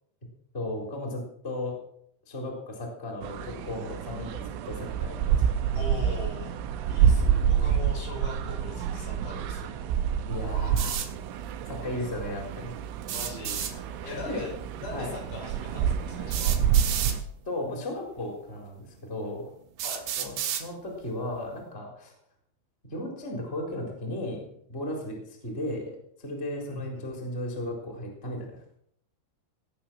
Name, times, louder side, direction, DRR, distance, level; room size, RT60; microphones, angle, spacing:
voice 1, 0.5-1.8 2.3-5.4 10.3-11.0 11.7-12.7 14.0-14.4 14.9-15.1 16.3-16.4 17.5-19.5 20.2-22.1 22.9-25.9 26.2-28.8, left 1 dB, 15° left, 0 dB, 3.5 m, -35 dB
sound 1, 3.2-17.2, right 8 dB, 85° right, 3.5 m, -28 dB
voice 2, 5.7-6.6 6.9-9.7 13.0-16.6 19.8-20.1 26.7-27.1, left 3 dB, 65° left, -1 dB, 7.7 m, -41 dB
sound 2, 10.8-11.1 13.0-13.7 15.2-15.3 16.3-17.2 18.2-18.3 18.9-19.0 19.8-20.7, right 9 dB, 65° right, 3.2 m, -31 dB
19.0 x 8.6 x 6.1 m, 0.68 s
omnidirectional pair, 5.6 m